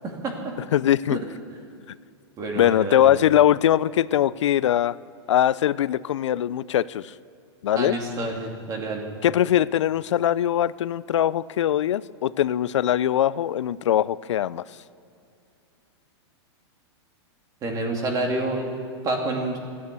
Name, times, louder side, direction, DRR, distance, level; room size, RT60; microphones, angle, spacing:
voice 1, 0.7-1.2 2.6-4.9 5.3-7.1 7.6-8.0 9.2-14.6, left 11 dB, 90° left, 18 dB, 0.4 m, -21 dB
voice 2, 2.4-3.2 7.8-9.1 17.6-18.7 19.0-19.6, right 2 dB, 25° right, 1 dB, 2.6 m, -28 dB
15.0 x 9.4 x 8.4 m, 2.5 s
hypercardioid pair, 145°, 15 cm